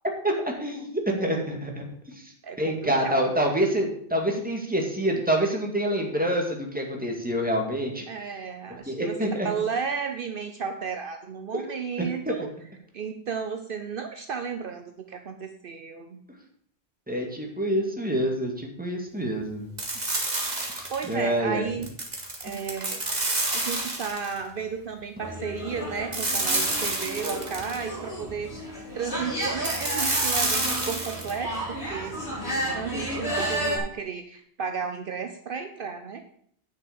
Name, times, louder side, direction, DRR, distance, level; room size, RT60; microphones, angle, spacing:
voice 1, 0.2-1.8 2.2-8.1 8.9-9.5 11.5-11.6 12.0-12.4 17.1-19.7 20.0-20.3 20.7-21.7, right 1 dB, 10° right, 1 dB, 2.1 m, -27 dB
voice 2, 2.4-3.2 8.1-12.5 12.9-16.2 20.9-21.9 22.4-23.0 23.5-31.5 31.9-32.2 32.5-36.2, right 6 dB, 60° right, 6 dB, 0.9 m, -33 dB
sound 1, 19.8-21.1 21.8-24.4 26.1-27.8 29.6-31.3, right 2 dB, 40° right, 1.9 m, -28 dB
sound 2, 25.2-33.8, right 1 dB, 85° left, 3.7 m, -32 dB
9.9 x 6.2 x 7.1 m, 0.65 s
omnidirectional pair, 1.1 m